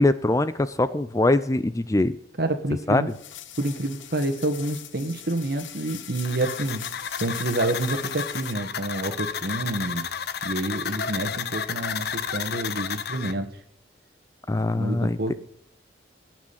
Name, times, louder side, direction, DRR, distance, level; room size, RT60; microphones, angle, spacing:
voice 1, 0.0-2.1 2.9-3.1 14.5-15.3, left 2 dB, 15° left, 13 dB, 0.5 m, -22 dB
voice 2, 2.4-3.1 3.6-6.9 7.2-10.1 10.4-13.6 14.7-15.3, right 1 dB, 55° right, 7 dB, 1.6 m, -28 dB
sound 1, 3.1-8.5, left 11 dB, 85° left, 0.9 m, -41 dB
sound 2, 6.2-13.3, left 7 dB, 55° left, 0.7 m, -32 dB
18.0 x 6.2 x 7.4 m, 0.73 s
head